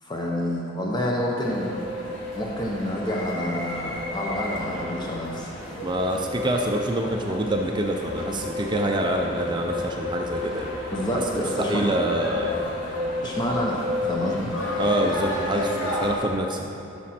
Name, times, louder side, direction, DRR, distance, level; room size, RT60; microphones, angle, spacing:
voice 1, 0.0-1.7 2.3-5.5 10.9-11.8 13.2-14.5, left 1 dB, 25° left, -2 dB, 0.8 m, -28 dB
sound 1, 1.4-16.2, left 2 dB, 80° left, 2.2 m, -31 dB
voice 2, 5.8-10.7 11.3-12.7 14.8-16.7, right 1 dB, 25° right, 2 dB, 0.5 m, -26 dB
12.5 x 6.0 x 4.4 m, 2.9 s
head